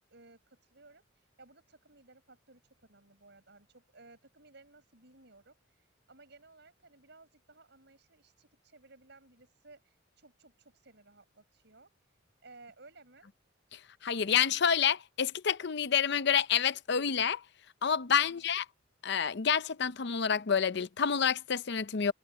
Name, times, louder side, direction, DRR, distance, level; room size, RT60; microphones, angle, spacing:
voice 1, 0.1-11.9 12.4-13.3 18.2-18.5, right 3 dB, 60° right, 7.1 m, -58 dB
voice 2, 13.7-17.4 17.8-18.6 19.0-22.1, left 7 dB, 60° left, 0.6 m, -28 dB
head